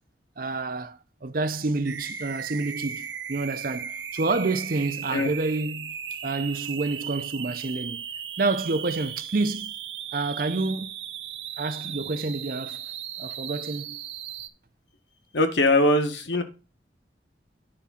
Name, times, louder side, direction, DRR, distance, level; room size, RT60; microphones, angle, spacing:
voice 1, 0.4-6.0 6.2-8.0 8.4-9.7 10.1-10.9 11.6-12.8 13.2-14.0, right 3 dB, 50° right, 0.7 m, -28 dB
sound 1, 1.8-14.5, right 9 dB, 90° right, 0.8 m, -36 dB
voice 2, 15.3-16.4, left 1 dB, 90° left, 1.4 m, -21 dB
9.9 x 3.6 x 5.7 m
head